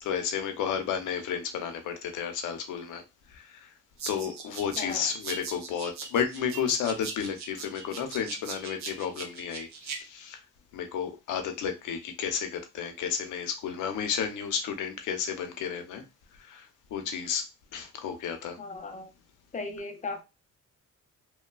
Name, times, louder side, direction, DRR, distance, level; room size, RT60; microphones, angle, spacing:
voice 1, 0.0-3.0 3.3-3.7 4.1-10.4 10.7-16.0 16.4-17.5 17.7-18.6, left 7 dB, 85° left, 0.7 m, -32 dB
sound 1, 4.0-10.0, right 5 dB, 65° right, 0.7 m, -40 dB
voice 2, 4.8-5.1 18.6-19.1 19.5-20.2, left 3 dB, 25° left, 0.6 m, -37 dB
3.1 x 2.2 x 2.2 m
cardioid pair, 90°, 30 cm